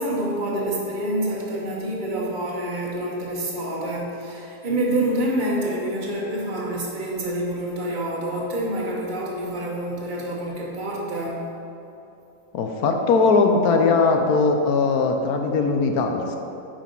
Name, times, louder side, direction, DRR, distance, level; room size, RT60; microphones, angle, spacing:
voice 1, 0.0-11.5, right 1 dB, 30° right, -4 dB, 1.4 m, -27 dB
voice 2, 12.5-16.4, left 4 dB, 65° left, 4 dB, 1.0 m, -20 dB
8.7 x 5.2 x 5.4 m, 2.9 s
omnidirectional pair, 1.9 m